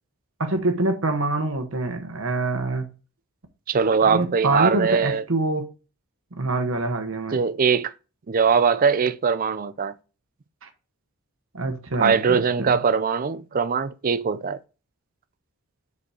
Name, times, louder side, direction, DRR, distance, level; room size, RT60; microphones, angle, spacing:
voice 1, 0.4-2.9 4.0-5.7 6.3-7.4 10.6-10.7 11.5-12.8, right 2 dB, 60° right, 1.1 m, -25 dB
voice 2, 3.7-5.2 7.3-7.9 8.3-9.9 12.0-14.6, right 6 dB, 40° right, 0.4 m, -21 dB
5.0 x 4.7 x 5.0 m
head